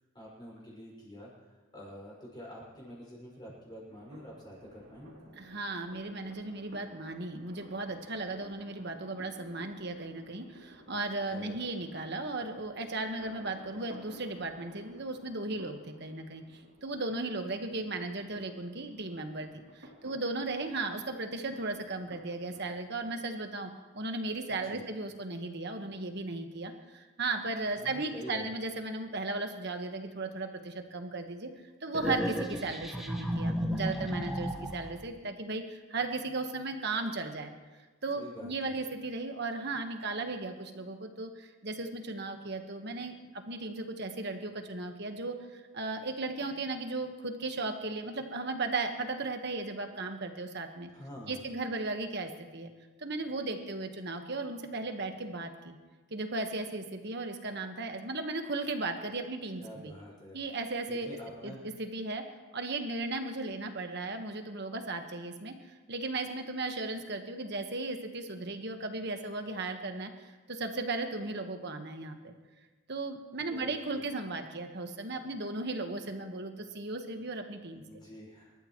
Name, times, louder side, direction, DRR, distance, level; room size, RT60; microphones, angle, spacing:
voice 1, 0.1-1.3 1.7-5.3 11.3-11.6 24.6-24.9 27.6-28.5 38.1-38.8 50.9-51.4 59.6-60.5 60.9-61.6 73.4-74.0 77.8-78.5, equal, 20° left, -4 dB, 5.9 m, -47 dB
sound 1, 3.9-22.7, equal, 80° right, 3.1 m, -55 dB
voice 2, 5.4-31.5 31.8-37.5 38.0-43.1 43.5-50.9 51.3-52.7 53.0-55.8 56.1-59.9 60.3-61.2 61.4-62.2 62.5-65.6 65.9-72.3 72.9-78.0, right 2 dB, 55° right, 5 dB, 1.4 m, -36 dB
sound 2, 31.9-35.0, equal, ahead, 1.3 m, -33 dB
26.5 x 13.5 x 3.1 m, 1.3 s
head